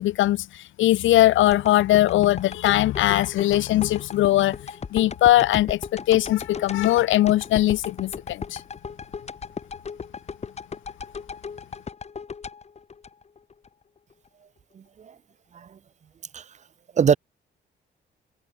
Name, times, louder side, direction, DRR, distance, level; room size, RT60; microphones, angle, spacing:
voice 1, 0.0-4.6 4.9-8.6, left 15 dB, 75° left, 0.7 m, -20 dB
sound 1, 1.5-13.7 14.1-14.2, left 5 dB, 35° left, 1.2 m, -36 dB
voice 2, 14.7-15.1 15.5-15.8 16.3-16.4 17.0-17.2, right 7 dB, 35° right, 0.6 m, -23 dB
cardioid pair, 90°, 20 cm